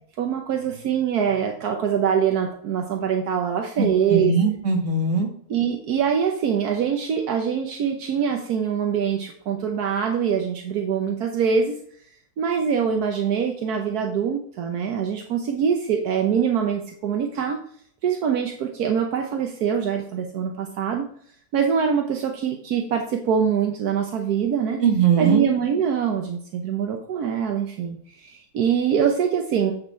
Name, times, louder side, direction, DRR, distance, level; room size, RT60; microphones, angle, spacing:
voice 1, 0.2-4.3 5.5-11.8 12.4-17.6 18.0-21.1 21.5-24.8 25.2-29.7, right 7 dB, 75° right, 3 dB, 1.4 m, -24 dB
voice 2, 3.8-5.3 24.8-25.4, right 5 dB, 50° right, 2 dB, 1.9 m, -20 dB
8.8 x 4.6 x 4.4 m, 0.62 s
omnidirectional pair, 1.7 m